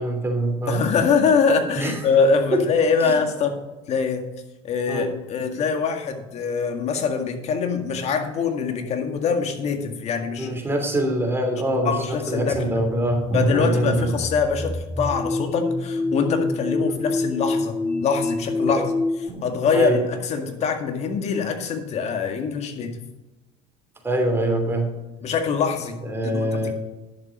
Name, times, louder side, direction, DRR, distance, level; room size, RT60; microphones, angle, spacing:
voice 1, 0.0-0.8 1.8-2.0 2.5-2.6 3.0-3.2 4.9-5.1 10.4-14.1 18.6-18.9 19.3-20.0 24.0-24.9 26.0-26.7, right 1 dB, 15° right, 2 dB, 3.0 m, -24 dB
voice 2, 0.7-3.6 3.9-4.3 4.6-10.5 11.9-12.7 13.3-18.8 19.4-23.0 25.2-26.0 26.2-26.7, left 5 dB, 50° left, 6 dB, 1.9 m, -23 dB
sound 1, 12.5-19.3, left 2 dB, 10° left, 0.5 m, -27 dB
11.0 x 7.3 x 5.2 m, 1.1 s
supercardioid pair, 90°, 15 cm